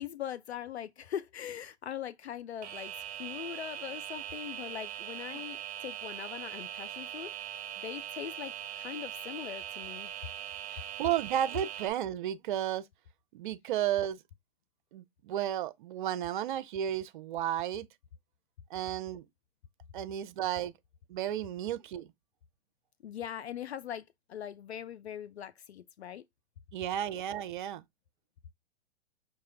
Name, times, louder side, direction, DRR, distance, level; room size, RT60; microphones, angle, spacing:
voice 1, 0.0-10.1 23.0-26.2, left 10 dB, 75° left, 0.5 m, -41 dB
sound 1, 2.6-11.9, right 11 dB, 30° right, 1.1 m, -41 dB
voice 2, 10.7-12.9 13.3-14.2 14.9-17.9 18.7-19.3 19.9-20.7 21.1-22.1 26.7-27.8, right 11 dB, 50° right, 0.6 m, -33 dB
5.9 x 2.3 x 3.3 m
figure-of-eight pair, 115°, 33 cm